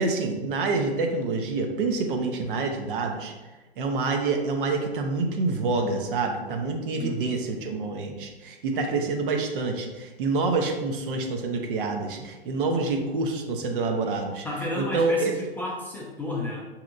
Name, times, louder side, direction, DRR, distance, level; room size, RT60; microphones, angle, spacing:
voice 1, 0.0-3.3 3.8-14.5 14.8-15.3, right 3 dB, 55° right, 3 dB, 0.7 m, -27 dB
voice 2, 7.0-7.4 14.4-16.7, left 1 dB, 5° left, -5 dB, 0.5 m, -32 dB
5.0 x 2.8 x 2.5 m, 1.1 s
hypercardioid pair, 115°, 31 cm